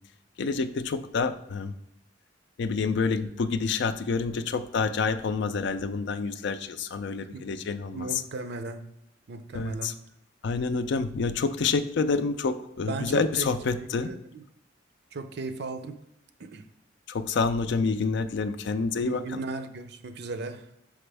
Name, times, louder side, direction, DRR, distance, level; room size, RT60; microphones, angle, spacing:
voice 1, 0.4-1.7 2.6-8.1 9.5-9.9 10.4-14.1 17.1-19.4, left 4 dB, 65° left, 11 dB, 0.4 m, -28 dB
voice 2, 7.9-8.8 9.3-10.0 12.9-13.5 13.8-14.4 15.1-16.0 16.4-16.6 19.0-20.7, right 3 dB, 60° right, 9 dB, 0.5 m, -36 dB
6.1 x 5.0 x 3.3 m, 0.82 s
head